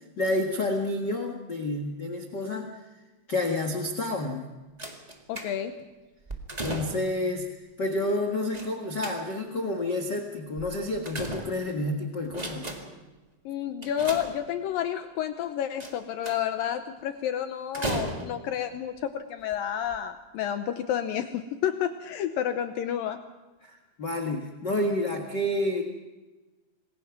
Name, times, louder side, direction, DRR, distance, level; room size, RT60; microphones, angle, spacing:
voice 1, 0.2-2.7 3.3-4.5 6.6-7.5 7.8-12.7 23.6-25.8, left 1 dB, 45° left, 3 dB, 1.4 m, -29 dB
sound 1, 4.8-5.8 6.3-7.2 8.5-9.6 10.6-11.9 12.2-13.1 13.8-14.8 15.8-16.6 17.7-18.6 19.4-19.5 19.9-20.0, right 2 dB, 70° right, 0.4 m, -36 dB
voice 2, 5.3-5.7 13.5-23.2, left 10 dB, 75° left, 8 dB, 2.4 m, -30 dB
27.5 x 20.5 x 6.0 m, 1.2 s
omnidirectional pair, 4.5 m